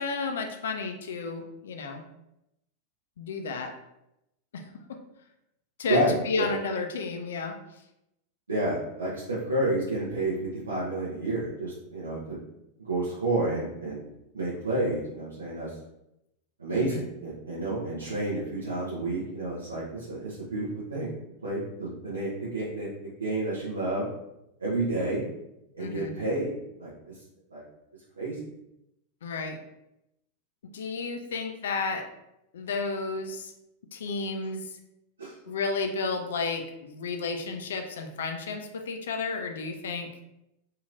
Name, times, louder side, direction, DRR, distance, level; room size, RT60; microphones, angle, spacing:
voice 1, 0.0-2.0 3.2-3.7 4.5-4.6 5.8-7.6 16.7-17.1 25.8-26.1 29.2-29.6 30.7-32.1 32.5-33.5 33.9-34.7 35.5-40.1, left 4 dB, 60° left, 5 dB, 0.4 m, -32 dB
voice 2, 5.9-6.5 8.5-10.3 10.7-12.4 12.8-14.0 14.3-15.7 16.6-21.1 21.4-24.0 24.6-25.2 25.7-26.5 26.8-26.9 27.5-27.6 28.2-28.5 35.2-35.3, right 2 dB, 75° right, -7 dB, 0.7 m, -30 dB
2.8 x 2.8 x 2.5 m, 0.85 s
figure-of-eight pair, 90°, 0 cm